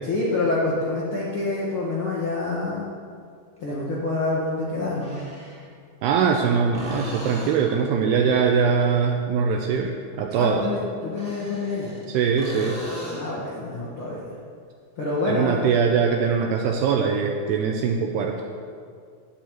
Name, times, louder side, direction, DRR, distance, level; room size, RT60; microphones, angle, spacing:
voice 1, 0.0-2.9 3.6-5.2 10.3-11.9 13.1-14.4 15.0-15.7, left 2 dB, 85° left, -6 dB, 1.1 m, -27 dB
sound 1, 3.6-3.7 4.9-5.7 6.7-7.9 11.0-12.1 12.4-13.4 17.1-17.2, equal, 5° left, 1.0 m, -37 dB
voice 2, 6.0-10.6 12.1-12.8 15.3-18.4, right 6 dB, 80° right, 2 dB, 2.4 m, -22 dB
12.0 x 6.6 x 9.0 m, 2.2 s
omnidirectional pair, 5.4 m